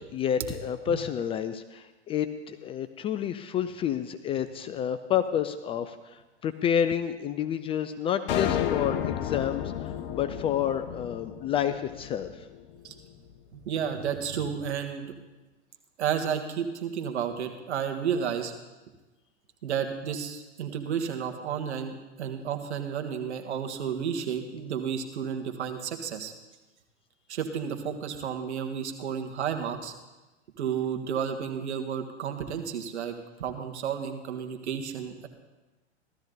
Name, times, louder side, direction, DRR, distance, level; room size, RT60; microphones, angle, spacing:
voice 1, 0.0-12.5, left 9 dB, 15° left, 10 dB, 0.3 m, -29 dB
sound 1, 8.3-12.7, left 9 dB, 50° left, 1.1 m, -32 dB
voice 2, 13.5-15.1 16.0-18.5 19.6-26.3 27.3-29.9 30.6-33.1 33.4-35.3, right 7 dB, 75° right, 6 dB, 1.8 m, -32 dB
15.5 x 13.0 x 4.0 m, 1.1 s
hypercardioid pair, 110°, 34 cm